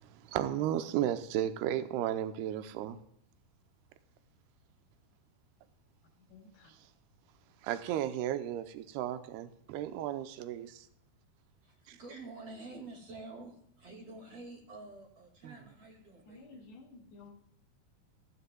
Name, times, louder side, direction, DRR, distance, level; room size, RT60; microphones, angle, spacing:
voice 1, 0.0-3.0 7.6-10.9 11.9-12.0 15.4-15.5, right 11 dB, 80° right, 2.7 m, -34 dB
voice 2, 6.3-6.7 16.3-17.3, left 3 dB, 80° left, 4.7 m, -53 dB
voice 3, 11.6-16.6, right 2 dB, 45° right, 2.6 m, -48 dB
15.5 x 15.0 x 2.3 m
omnidirectional pair, 4.8 m